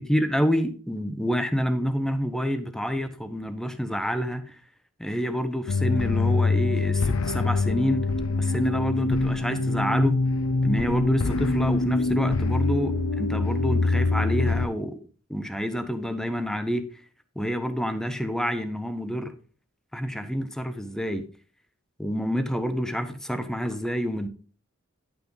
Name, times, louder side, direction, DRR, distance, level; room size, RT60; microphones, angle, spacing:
voice 1, 0.1-4.6 5.0-8.1 8.4-10.2 10.6-15.0 15.3-16.8 17.4-19.3 19.9-21.3 22.0-24.3, equal, ahead, 9 dB, 0.7 m, -28 dB
sound 1, 5.7-14.7, left 3 dB, 65° left, 0.6 m, -24 dB
10.5 x 5.9 x 3.9 m, 0.41 s
head